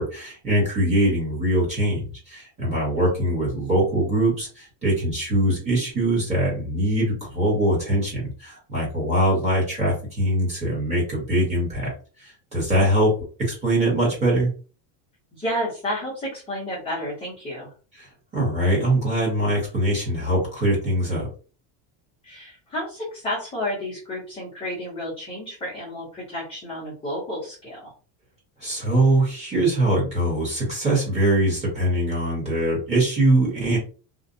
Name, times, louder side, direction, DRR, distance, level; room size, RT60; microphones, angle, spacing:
voice 1, 0.0-11.9 12.2-14.5 18.0-18.1 18.3-21.3 28.6-33.8, right 1 dB, 15° right, -5 dB, 1.0 m, -22 dB
voice 2, 15.3-17.7 22.2-27.9, left 1 dB, 10° left, -7 dB, 0.5 m, -31 dB
2.5 x 2.1 x 2.5 m, 0.37 s
cardioid pair, 175°, 48 cm